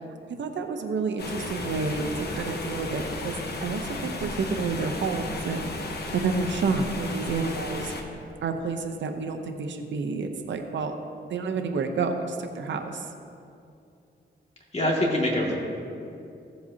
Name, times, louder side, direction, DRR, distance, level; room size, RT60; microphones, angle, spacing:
voice 1, 0.4-5.7 6.1-7.9 8.4-10.9 11.3-13.1, right 4 dB, 85° right, 6 dB, 0.7 m, -29 dB
sound 1, 1.2-8.0, left 2 dB, 60° left, 1.1 m, -34 dB
voice 2, 14.7-15.5, left 1 dB, 35° left, -3 dB, 2.1 m, -24 dB
15.0 x 7.8 x 2.8 m, 2.6 s
cardioid pair, 90°, 19 cm